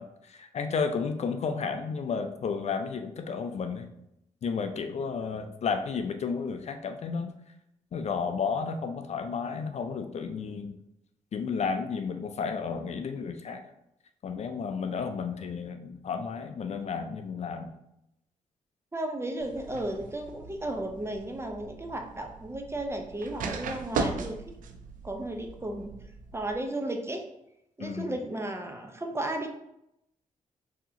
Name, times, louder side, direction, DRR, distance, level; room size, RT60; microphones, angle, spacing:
voice 1, 0.0-3.9 4.4-7.3 7.9-10.8 11.3-13.6 14.2-17.7 27.8-28.1, left 5 dB, 55° left, 7 dB, 0.4 m, -32 dB
voice 2, 18.9-24.6 25.0-25.9 26.3-27.2 27.8-29.5, right 1 dB, 20° right, 4 dB, 0.6 m, -34 dB
sound 1, 19.4-26.6, right 4 dB, 75° right, 0.4 m, -38 dB
3.8 x 2.8 x 2.8 m, 0.81 s
supercardioid pair, 55°, 14 cm